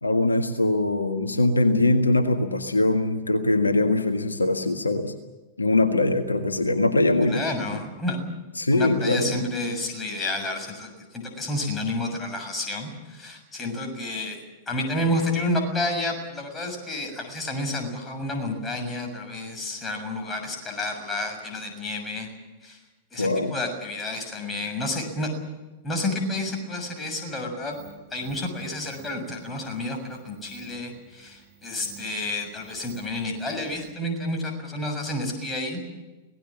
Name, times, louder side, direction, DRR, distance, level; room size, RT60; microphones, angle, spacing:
voice 1, 0.0-5.1 5.6-7.4 8.6-9.3 23.2-23.5, left 2 dB, 85° left, 7 dB, 1.6 m, -22 dB
voice 2, 7.2-8.2 8.7-14.4 14.7-22.3 22.6-22.8 23.1-25.3 25.8-27.8 28.1-35.8, left 1 dB, 15° left, 3 dB, 6.8 m, -30 dB
sound 1, 27.7-33.9, right 8 dB, 30° right, 6.9 m, -52 dB
26.0 x 18.5 x 7.5 m, 1.1 s
figure-of-eight pair, 95°, 0 cm